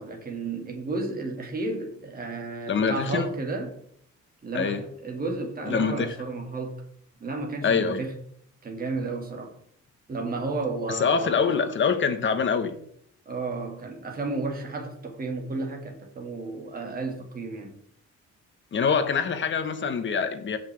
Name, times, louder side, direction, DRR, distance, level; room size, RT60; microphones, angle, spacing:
voice 1, 0.0-3.8 4.4-6.8 7.2-8.1 8.6-9.6 10.1-11.8 13.3-17.8, right 3 dB, 30° right, 2.0 m, -32 dB
voice 2, 2.7-3.3 4.5-4.8 5.7-6.1 7.6-8.0 11.0-12.8 18.7-20.6, left 6 dB, 40° left, 1.2 m, -25 dB
16.5 x 5.8 x 3.4 m
cardioid pair, 155°, 30 cm